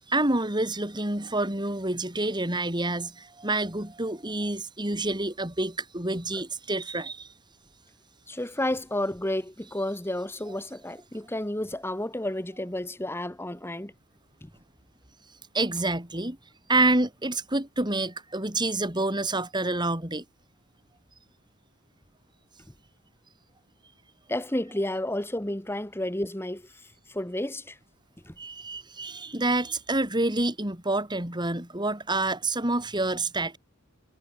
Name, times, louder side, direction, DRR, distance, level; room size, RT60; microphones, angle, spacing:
voice 1, 0.1-7.3 15.5-16.4 16.7-20.2 28.4-33.6, right 2 dB, 20° right, 4.6 m, -28 dB
voice 2, 8.3-13.9 14.4-14.5 24.3-26.6 27.1-27.8 28.2-28.3, left 1 dB, 10° left, 1.6 m, -31 dB
head